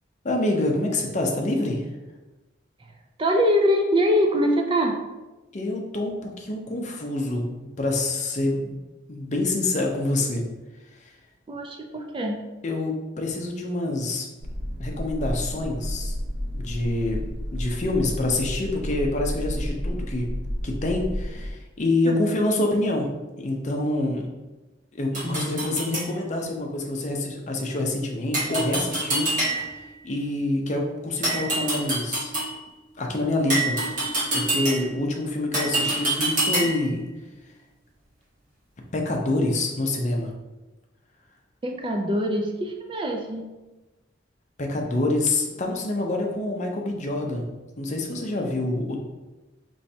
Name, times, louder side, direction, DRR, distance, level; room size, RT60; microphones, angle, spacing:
voice 1, 0.2-1.8 5.5-7.5 7.8-8.7 9.1-10.4 10.9-11.1 12.6-14.3 14.8-16.1 16.5-20.3 20.6-23.1 23.4-24.3 24.9-32.3 33.0-33.8 34.3-37.1 38.9-40.3 44.6-47.5 47.8-49.0, left 2 dB, 40° left, 1 dB, 0.5 m, -26 dB
voice 2, 3.2-5.0 11.5-12.4 22.1-22.2 25.2-25.4 41.6-43.4, equal, 25° right, 3 dB, 0.4 m, -23 dB
sound 1, 14.4-21.5, equal, 80° right, 0.7 m, -31 dB
sound 2, 25.1-26.1 28.3-29.9 31.2-32.6 33.5-35.0 35.5-36.9, right 2 dB, 45° right, 1.3 m, -26 dB
4.4 x 3.1 x 2.7 m, 1.1 s
head